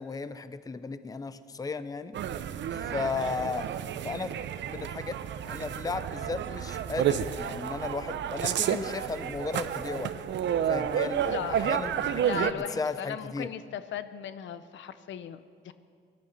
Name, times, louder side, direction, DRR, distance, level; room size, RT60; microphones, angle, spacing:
voice 1, 0.0-2.2 2.7-3.7 4.0-4.3 4.7-5.2 5.4-10.1 10.7-13.5, left 4 dB, 20° left, 13 dB, 0.6 m, -35 dB
sound 1, 2.1-12.5, right 9 dB, 65° right, 0.7 m, -31 dB
voice 2, 11.2-11.7 12.2-15.7, left 9 dB, 70° left, 13 dB, 0.7 m, -38 dB
17.5 x 12.0 x 6.6 m, 2.2 s
cardioid pair, 90°, 20 cm